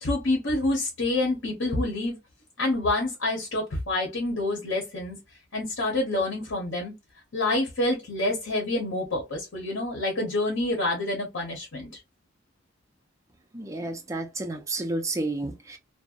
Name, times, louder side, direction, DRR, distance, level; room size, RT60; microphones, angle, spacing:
voice 1, 0.0-2.2 2.6-5.2 5.5-6.9 7.3-11.9, left 2 dB, 85° left, 0.9 m, -27 dB
voice 2, 13.5-15.8, right 2 dB, 15° right, 0.5 m, -31 dB
2.6 x 2.0 x 2.3 m
head